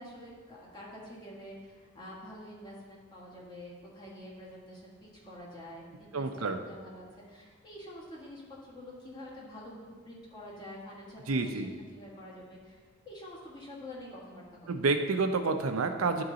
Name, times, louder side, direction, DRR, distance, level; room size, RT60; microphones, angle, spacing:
voice 1, 0.0-14.7, left 1 dB, 20° left, -5 dB, 1.5 m, -47 dB
voice 2, 6.1-6.6 11.3-11.7 14.7-16.2, right 3 dB, 80° right, 6 dB, 0.6 m, -29 dB
10.5 x 3.9 x 3.9 m, 1.5 s
head